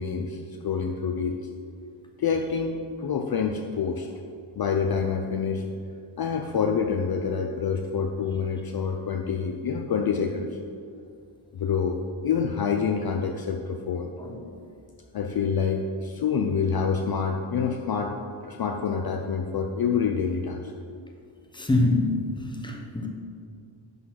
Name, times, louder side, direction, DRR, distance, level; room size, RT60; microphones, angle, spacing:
voice 1, 0.0-1.5 2.2-4.1 4.6-5.6 6.2-10.5 11.5-14.1 15.1-18.1 18.4-20.7, left 6 dB, 50° left, 3 dB, 0.5 m, -27 dB
voice 2, 21.5-23.1, left 2 dB, 10° left, 1 dB, 0.9 m, -25 dB
10.5 x 4.1 x 5.9 m, 2.3 s
wide cardioid pair, 155°, 49 cm